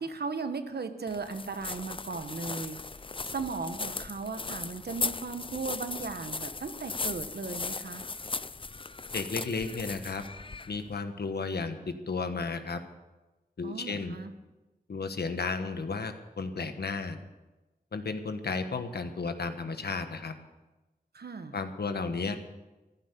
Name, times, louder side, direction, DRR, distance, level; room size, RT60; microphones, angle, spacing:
voice 1, 0.0-2.8 3.3-8.0 13.6-14.3 21.1-21.6, right 4 dB, 85° right, 9 dB, 1.2 m, -36 dB
sound 1, 1.1-11.0, left 3 dB, 35° left, 0.5 m, -37 dB
voice 2, 9.1-10.2 10.7-12.8 13.6-14.2 14.9-17.2 17.9-20.3 21.5-22.4, left 4 dB, 90° left, 8 dB, 1.3 m, -33 dB
14.5 x 12.0 x 6.9 m, 1.1 s
wide cardioid pair, 65°, 16 cm